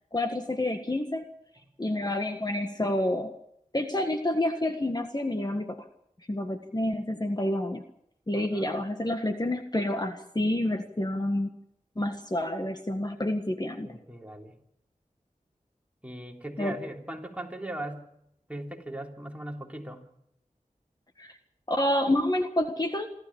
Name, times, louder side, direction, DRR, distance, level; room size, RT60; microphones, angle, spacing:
voice 1, 0.1-1.3 1.8-3.3 3.7-5.9 6.3-7.8 8.3-11.5 12.0-14.0 16.6-16.8 21.2-21.3 21.7-23.1, left 1 dB, 30° left, 5 dB, 1.7 m, -28 dB
voice 2, 13.8-14.5 16.0-18.1 18.5-20.0, right 1 dB, 10° right, 1 dB, 3.6 m, -39 dB
27.5 x 13.0 x 7.2 m, 0.74 s
wide cardioid pair, 45°, 14 cm